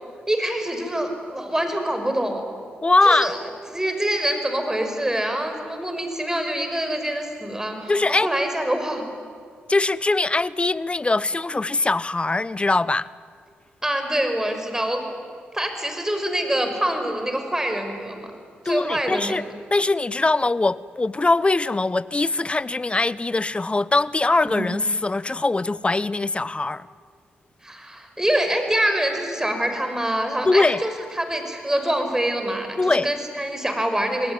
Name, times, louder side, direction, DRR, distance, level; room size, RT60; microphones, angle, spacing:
voice 1, 0.3-2.4 3.1-3.4 3.7-9.1 13.8-15.0 15.5-18.3 18.6-19.4 24.4-24.7 27.6-34.3, right 1 dB, 15° right, 6 dB, 5.7 m, -25 dB
voice 2, 2.8-3.3 7.9-8.3 9.7-13.1 18.7-19.4 19.7-26.9 30.5-30.8 32.8-33.1, left 3 dB, 25° left, 19 dB, 0.8 m, -21 dB
27.5 x 19.0 x 9.7 m, 2.1 s
supercardioid pair, 50°, 4 cm